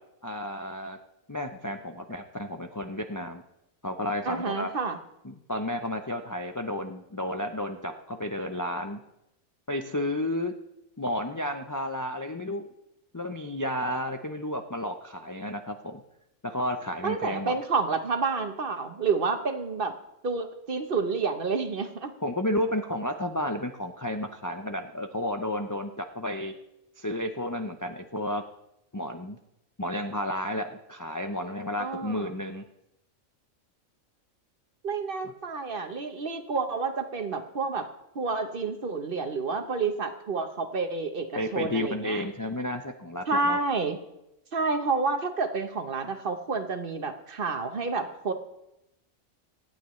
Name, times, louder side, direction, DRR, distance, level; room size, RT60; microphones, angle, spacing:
voice 1, 0.2-1.0 1.3-3.4 3.8-4.7 5.2-9.0 9.7-10.5 11.0-12.7 13.1-16.0 16.4-17.5 22.2-26.5 27.0-28.4 28.9-29.4 29.8-32.6 41.3-43.6, left 1 dB, 25° left, 5 dB, 0.4 m, -32 dB
voice 2, 4.3-5.0 17.0-19.9 20.2-22.1 31.8-32.3 34.8-37.9 38.1-42.2 43.3-44.0 44.5-48.3, right 4 dB, 45° right, 7 dB, 1.0 m, -29 dB
26.5 x 9.1 x 3.1 m, 0.86 s
omnidirectional pair, 1.4 m